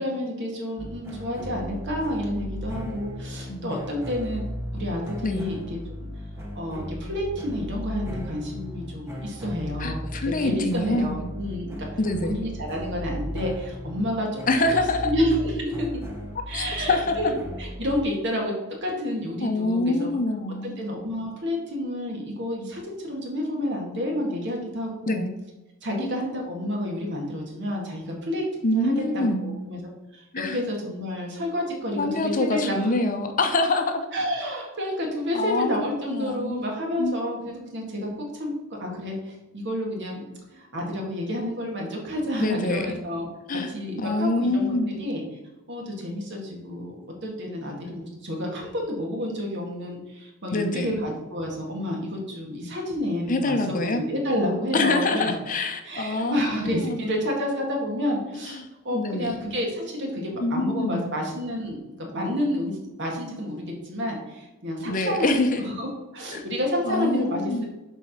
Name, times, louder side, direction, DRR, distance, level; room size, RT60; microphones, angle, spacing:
voice 1, 0.0-4.4 4.7-6.1 6.6-11.9 12.2-14.7 15.0-15.9 16.5-18.5 18.8-20.2 20.6-25.3 25.8-28.5 28.7-29.8 30.1-30.2 30.5-32.9 34.1-38.1 38.3-38.5 38.8-43.3 43.7-44.7 45.0-45.2 45.7-46.9 47.2-55.3 55.9-58.6 58.8-67.7, left 1 dB, 55° right, 0 dB, 1.9 m, -29 dB
sound 1, 0.8-18.0, equal, 10° right, 1.0 m, -36 dB
voice 2, 3.5-3.8 5.2-5.5 9.8-11.3 12.0-12.4 14.5-15.1 16.5-17.3 19.4-20.7 25.1-25.3 26.0-26.2 28.6-29.6 30.3-30.6 32.0-34.1 35.3-36.7 37.0-37.1 42.4-43.0 43.5-45.0 50.5-51.0 53.3-54.0 54.7-57.2 58.3-59.5 60.4-61.2 64.8-65.6 66.3-66.4 66.8-67.7, left 2 dB, 40° left, 6 dB, 0.7 m, -26 dB
7.3 x 3.6 x 5.8 m, 1.1 s
head